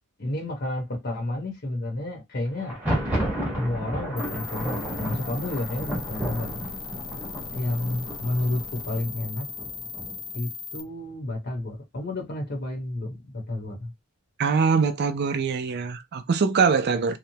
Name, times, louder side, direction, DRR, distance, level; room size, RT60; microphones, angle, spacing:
voice 1, 0.2-2.8 3.6-6.6 7.5-9.5 10.3-13.9, left 1 dB, 50° left, 1.0 m, -31 dB
Thunder, 2.6-10.4, right 1 dB, 10° right, 1.2 m, -32 dB
sound 1, 4.2-10.8, left 5 dB, 20° left, 0.3 m, -38 dB
voice 2, 14.4-17.2, right 5 dB, 50° right, 0.4 m, -23 dB
3.0 x 2.2 x 2.7 m
head